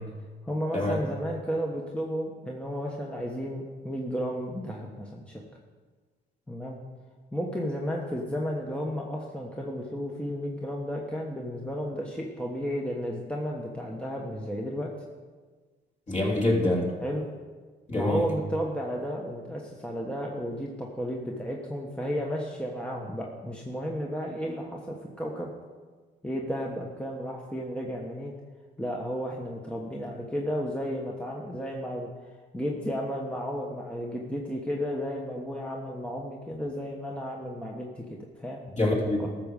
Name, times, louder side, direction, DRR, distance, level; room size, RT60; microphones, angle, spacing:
voice 1, 0.4-5.4 6.5-6.8 7.3-14.9 17.0-17.2 18.0-25.5 26.2-28.3 28.8-32.1 32.5-38.6 39.2-39.3, equal, 5° left, -1 dB, 1.3 m, -33 dB
voice 2, 16.1-16.9 17.9-18.2 38.8-39.3, left 2 dB, 35° left, -2 dB, 3.2 m, -25 dB
13.5 x 6.9 x 5.3 m, 1.4 s
cardioid pair, 90°, 20 cm